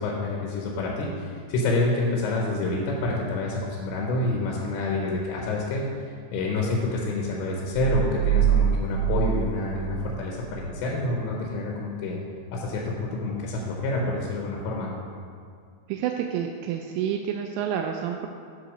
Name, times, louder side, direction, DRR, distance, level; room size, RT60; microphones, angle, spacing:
voice 1, 0.0-5.8 6.3-12.2 12.5-14.9, left 2 dB, 85° left, -2 dB, 3.3 m, -28 dB
sound 1, 7.7-10.7, right 10 dB, 35° right, 3.0 m, -25 dB
voice 2, 15.9-18.3, right 9 dB, 85° right, 3 dB, 2.8 m, -29 dB
11.0 x 4.0 x 6.5 m, 2.2 s
omnidirectional pair, 5.2 m